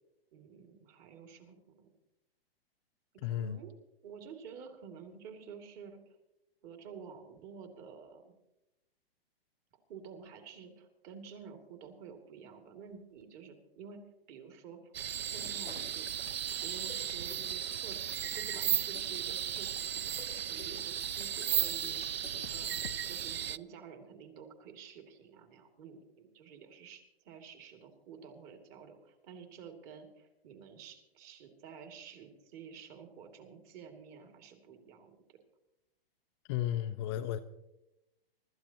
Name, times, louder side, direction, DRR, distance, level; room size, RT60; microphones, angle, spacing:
voice 1, 0.3-1.9 3.1-6.1 6.6-8.3 9.9-14.0 14.3-14.9 15.2-16.1 16.6-22.2 22.5-35.4, right 6 dB, 35° right, 5 dB, 2.5 m, -51 dB
voice 2, 3.2-3.6 36.5-37.4, left 11 dB, 30° left, 7 dB, 0.5 m, -33 dB
sound 1, 14.9-23.6, right 10 dB, 85° right, 0.5 m, -35 dB
sound 2, 15.3-23.0, left 9 dB, 80° left, 0.8 m, -52 dB
25.5 x 13.0 x 2.9 m, 0.93 s
hypercardioid pair, 135°, 30 cm